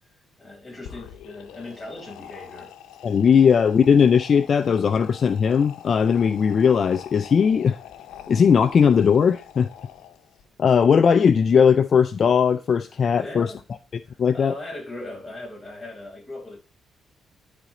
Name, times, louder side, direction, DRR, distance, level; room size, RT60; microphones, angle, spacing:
voice 1, 0.1-2.8 13.2-13.6 14.0-16.6, left 2 dB, 10° left, 5.4 m, -39 dB
sound 1, 0.7-10.4, left 10 dB, 90° left, 0.8 m, -44 dB
voice 2, 3.0-7.8 8.3-9.7 10.6-13.5 14.2-14.5, left 6 dB, 50° left, 0.4 m, -18 dB
12.0 x 4.3 x 3.8 m
cardioid pair, 90°, 0 cm